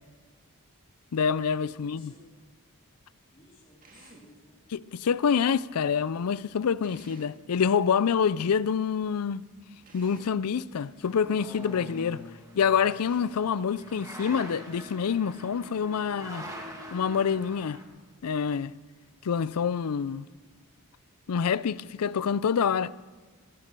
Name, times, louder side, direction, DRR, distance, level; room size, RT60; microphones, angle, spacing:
voice 1, 1.1-2.1 4.7-9.4 9.9-12.2 12.6-16.5 16.9-17.8 18.2-18.7 19.2-20.3 21.3-22.9, left 7 dB, 85° left, 0.4 m, -26 dB
voice 2, 1.7-2.3 3.3-4.6, left 2 dB, 25° left, 2.5 m, -57 dB
Drill, 3.8-4.4 6.8-7.5 9.8-10.4 12.8-13.4, right 3 dB, 40° right, 2.0 m, -53 dB
sound 1, 10.9-17.8, equal, 15° right, 2.1 m, -44 dB
15.5 x 10.5 x 6.7 m
head